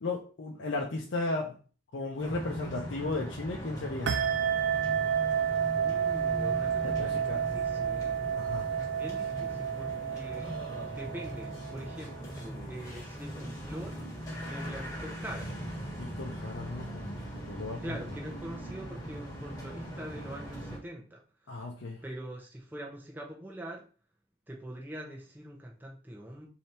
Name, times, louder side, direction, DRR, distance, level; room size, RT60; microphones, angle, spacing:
voice 1, 0.0-1.5 1.9-4.2 6.8-7.4 8.4-8.7 16.0-18.0 21.5-22.0, left 2 dB, 70° left, -1 dB, 0.6 m, -35 dB
sound 1, 2.2-20.8, equal, 20° left, 1.2 m, -40 dB
sound 2, 4.1-12.2, right 8 dB, 65° right, 0.4 m, -31 dB
voice 2, 5.8-8.2 8.9-10.5 10.9-14.0 14.4-15.5 17.8-21.7 22.0-23.8 24.5-26.5, right 1 dB, 10° right, 0 dB, 0.6 m, -43 dB
3.3 x 2.7 x 4.1 m, 0.38 s
head